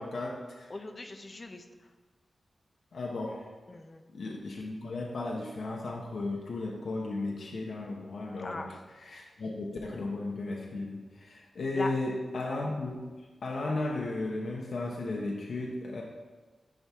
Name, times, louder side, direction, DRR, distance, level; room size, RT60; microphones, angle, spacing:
voice 1, 0.0-0.7 2.9-3.5 4.1-8.6 9.0-13.1 13.4-16.0, left 2 dB, 70° left, -1 dB, 0.9 m, -35 dB
voice 2, 0.7-1.9 3.7-4.0 8.4-8.8 11.7-11.9, left 2 dB, 30° left, 6 dB, 0.5 m, -40 dB
10.0 x 4.4 x 3.5 m, 1.3 s
wide cardioid pair, 180°, 0 cm